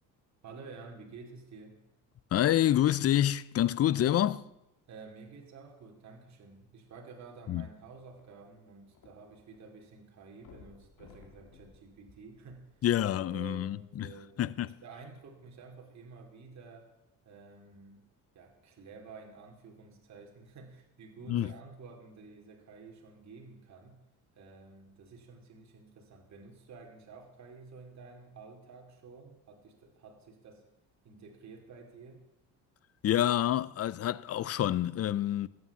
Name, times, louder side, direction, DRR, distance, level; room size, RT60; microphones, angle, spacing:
voice 1, 0.4-1.8 4.9-12.8 13.3-14.4 14.6-16.9 17.2-18.1 18.3-24.0 24.3-30.7 31.0-32.2, right 4 dB, 50° right, 2.7 m, -51 dB
voice 2, 2.3-4.4 7.5-7.6 12.8-14.1 14.4-14.7 21.3-21.5 33.0-35.5, left 12 dB, 45° left, 0.6 m, -27 dB
sound 1, 8.2-9.6 9.9-10.0 10.4-13.0 13.7-13.8, left 5 dB, 65° left, 3.3 m, -57 dB
13.5 x 8.8 x 7.1 m
supercardioid pair, 85°, 35 cm